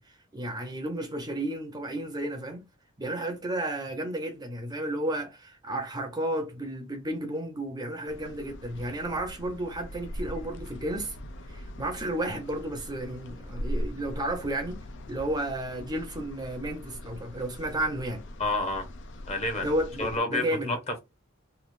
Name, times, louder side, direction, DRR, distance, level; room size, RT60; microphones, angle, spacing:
voice 1, 0.0-2.6 3.0-11.2 11.5-14.8 15.1-18.2 19.6-20.7, right 1 dB, 20° right, 0.6 m, -32 dB
sound 1, 8.1-20.2, equal, 60° left, 0.5 m, -40 dB
voice 2, 18.4-18.9 19.3-19.7 20.0-21.0, left 2 dB, 30° left, 1.0 m, -29 dB
3.2 x 2.4 x 2.4 m
head